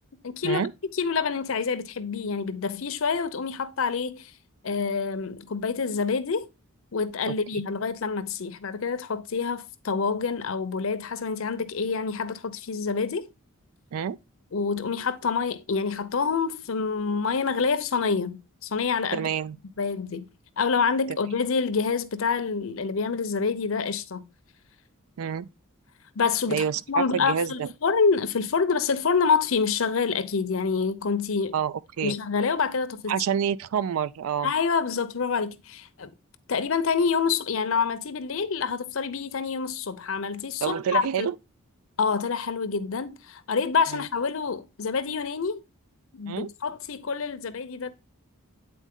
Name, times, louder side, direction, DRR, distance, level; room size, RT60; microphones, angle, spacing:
voice 1, 0.2-0.6 0.9-4.3 4.6-6.5 6.9-13.3 14.5-19.3 19.8-20.3 20.6-24.2 26.2-31.5 32.0-33.1 34.4-36.1 36.5-41.3 42.0-45.6 46.1-47.9, left 5 dB, 65° left, 0.6 m, -27 dB
voice 2, 7.3-7.6 13.9-14.2 19.1-19.6 25.2-25.5 26.5-27.7 31.5-32.1 33.1-34.5 40.6-41.3 43.9-44.0 46.3-46.5, right 8 dB, 75° right, 0.3 m, -28 dB
8.6 x 4.0 x 3.6 m
head